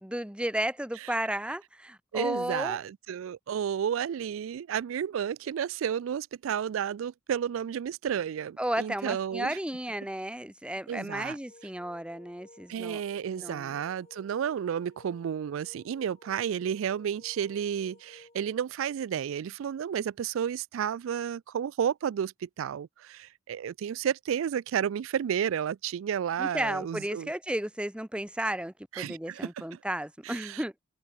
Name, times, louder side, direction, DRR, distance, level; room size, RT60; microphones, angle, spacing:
voice 1, 0.0-2.8 8.6-13.0 13.3-13.7 26.4-30.7, right 1 dB, 5° right, 1.2 m, -33 dB
voice 2, 2.1-9.6 10.9-11.4 12.7-27.3 28.9-29.8 30.3-30.8, right 8 dB, 75° right, 0.3 m, -32 dB
sound 1, 11.5-18.6, left 2 dB, 30° left, 2.9 m, -56 dB
head